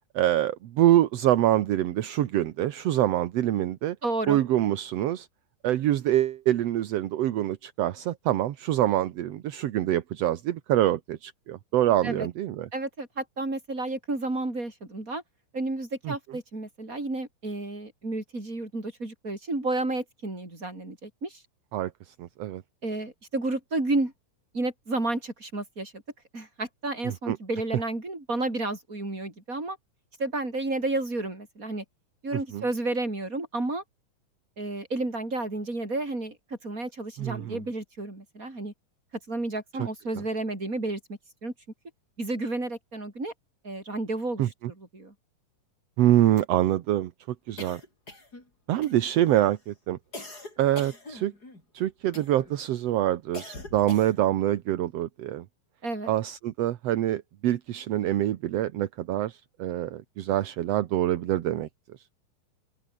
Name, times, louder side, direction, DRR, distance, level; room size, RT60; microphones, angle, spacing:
voice 1, 0.1-4.0 4.3-5.3 5.6-12.7 16.0-16.1 21.7-22.6 27.1-27.4 32.5-32.6 37.2-37.6 39.8-39.9 44.4-44.7 46.0-47.8 48.7-50.0 50.6-51.3 51.7-55.5 56.1-61.7, right 13 dB, 65° right, 1.8 m, -25 dB
voice 2, 4.0-4.4 12.0-12.3 12.7-15.2 15.5-21.4 22.8-24.1 24.5-26.0 26.3-29.8 30.2-31.8 32.2-33.8 34.6-38.7 39.3-41.5 42.2-43.3 43.6-44.4 44.8-45.1 55.8-56.1, right 2 dB, 25° right, 6.5 m, -31 dB
sound 1, 47.6-48.5 48.8-49.3 50.1-51.6 52.1-52.6 53.3-54.4, left 2 dB, 25° left, 7.3 m, -42 dB
open air
omnidirectional pair, 3.8 m